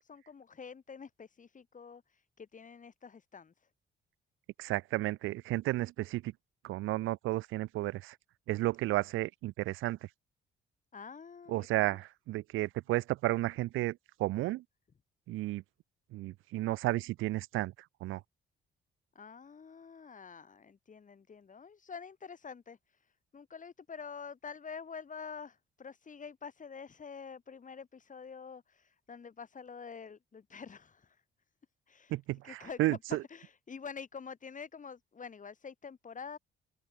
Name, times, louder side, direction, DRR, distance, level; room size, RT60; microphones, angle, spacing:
voice 1, 0.0-2.0 2.4-3.5 10.9-12.0 19.1-22.8 23.3-31.1 31.9-32.1 32.4-33.0 33.3-36.4, left 6 dB, 40° left, 6.5 m, -47 dB
voice 2, 4.6-6.3 6.6-8.2 8.5-10.0 11.5-14.6 15.3-15.6 16.1-17.7 18.0-18.2 32.1-33.2, right 17 dB, 90° right, 0.7 m, -32 dB
cardioid pair, 90°, 20 cm